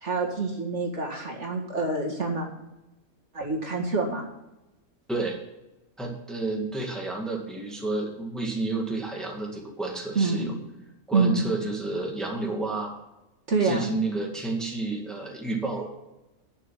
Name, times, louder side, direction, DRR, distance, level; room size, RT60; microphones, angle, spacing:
voice 1, 0.0-2.5 3.3-4.2 10.2-10.5 11.1-11.4 13.5-13.9, right 3 dB, 50° right, 0 dB, 2.3 m, -26 dB
voice 2, 5.1-5.4 6.0-10.6 11.1-12.9 13.6-15.9, right 3 dB, ahead, 0 dB, 1.9 m, -30 dB
11.0 x 6.7 x 7.1 m, 0.96 s
omnidirectional pair, 1.5 m